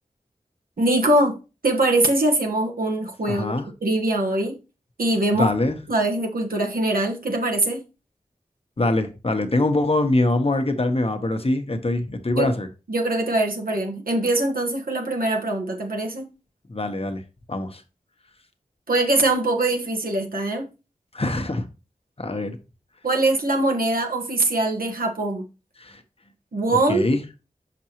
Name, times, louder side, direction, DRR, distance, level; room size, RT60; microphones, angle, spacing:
voice 1, 0.8-1.3 1.6-4.6 5.0-5.5 5.9-7.8 12.4-12.5 12.9-16.3 18.9-20.7 23.0-25.4 26.5-27.0, right 2 dB, 85° right, 1.4 m, -22 dB
voice 2, 3.3-3.6 5.4-5.8 8.8-12.7 16.7-17.2 17.5-17.8 21.1-21.7 22.2-22.6 25.8-26.0 26.9-27.2, left 2 dB, 40° left, 0.9 m, -23 dB
6.0 x 5.9 x 2.9 m
wide cardioid pair, 75°, 15 cm